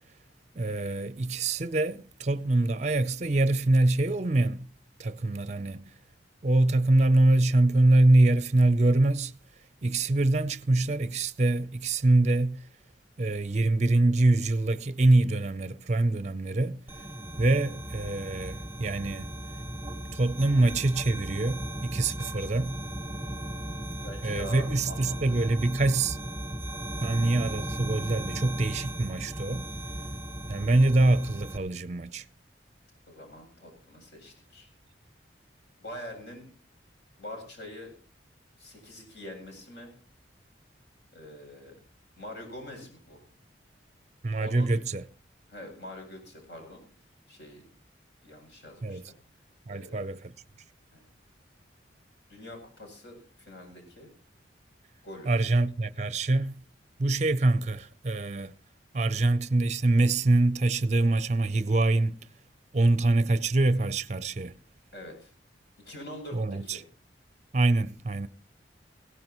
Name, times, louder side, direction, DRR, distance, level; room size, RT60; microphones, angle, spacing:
voice 1, 0.5-4.7 5.0-5.8 6.4-9.3 9.8-12.7 13.2-16.8 17.4-19.3 20.1-22.8 24.2-26.2 27.0-29.7 30.5-32.2 44.2-45.0 48.8-49.0 49.7-50.3 55.3-56.5 57.0-58.5 58.9-62.2 62.7-64.6 66.3-66.8 67.5-68.3, right 2 dB, 40° right, 0.6 m, -24 dB
sound 1, 16.9-31.6, right 1 dB, 10° right, 1.1 m, -37 dB
voice 2, 24.0-25.5 33.1-34.7 35.8-36.4 37.2-37.9 38.6-39.9 41.1-41.8 42.2-43.2 44.4-44.7 45.5-46.8 47.3-47.6 48.2-49.1 49.7-50.1 50.9-51.0 52.3-54.1 55.0-55.3 64.9-65.3 65.8-66.8, left 1 dB, 65° left, 7.8 m, -44 dB
17.5 x 16.0 x 3.1 m
head